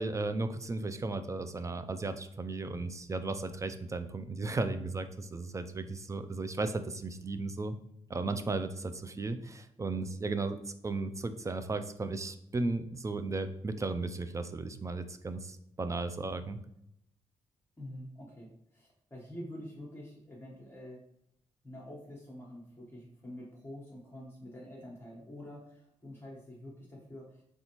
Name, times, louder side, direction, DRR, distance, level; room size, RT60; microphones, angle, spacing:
voice 1, 0.0-7.8 8.1-10.6 10.8-16.6, right 3 dB, 25° right, 10 dB, 0.4 m, -35 dB
voice 2, 17.8-21.0 21.6-27.4, left 1 dB, 20° left, -4 dB, 1.1 m, -47 dB
4.1 x 3.4 x 3.0 m, 0.77 s
cardioid pair, 75°, 12 cm